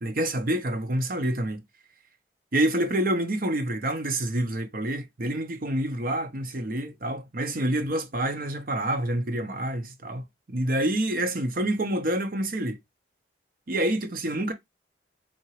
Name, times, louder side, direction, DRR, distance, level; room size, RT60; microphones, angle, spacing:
voice 1, 0.0-1.6 2.5-12.8 13.7-14.5, right 1 dB, 50° right, 0.8 m, -27 dB
4.3 x 2.9 x 2.9 m
head